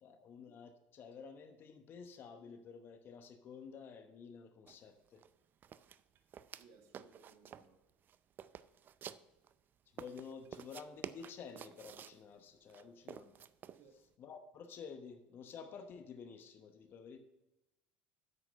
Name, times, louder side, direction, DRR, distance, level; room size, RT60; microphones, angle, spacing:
voice 1, 0.0-5.2 9.9-13.3 14.2-17.2, left 6 dB, 45° left, 7 dB, 1.0 m, -51 dB
sound 1, 4.7-4.8 5.1-5.3 5.6-6.6 6.9-7.7 8.1-9.5 10.0-12.2 12.7-13.8, right 9 dB, 40° right, 0.5 m, -50 dB
voice 2, 6.5-7.8 13.7-14.0, right 5 dB, 60° right, 5 dB, 1.5 m, -63 dB
9.7 x 7.5 x 5.3 m, 0.99 s
supercardioid pair, 90°, 5 cm